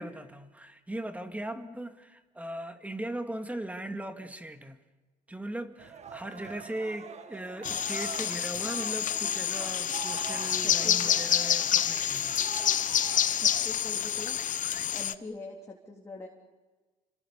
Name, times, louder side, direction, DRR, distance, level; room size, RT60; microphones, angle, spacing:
voice 1, 0.0-4.8 5.3-12.5, right 1 dB, 10° right, 2.1 m, -39 dB
sound 1, 5.8-13.6, right 6 dB, 40° right, 1.8 m, -44 dB
sound 2, 7.6-15.1, left 10 dB, 50° left, 1.1 m, -28 dB
voice 2, 10.6-11.2 13.4-14.4 14.9-16.3, left 3 dB, 15° left, 3.5 m, -43 dB
29.0 x 25.5 x 7.1 m
cardioid pair, 110°, 17 cm